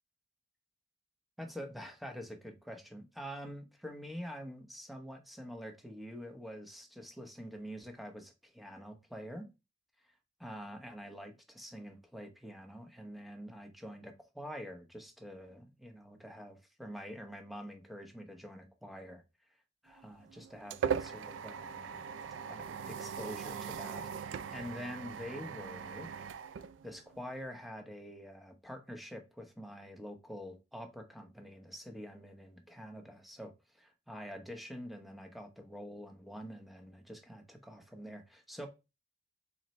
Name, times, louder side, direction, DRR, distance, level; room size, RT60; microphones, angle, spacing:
voice 1, 1.4-9.5 10.4-19.2 19.8-22.0 22.5-26.1 26.8-38.7, equal, ahead, 0.8 m, -46 dB
sound 1, 20.0-27.4, right 7 dB, 90° right, 0.3 m, -40 dB
4.1 x 3.9 x 3.1 m
head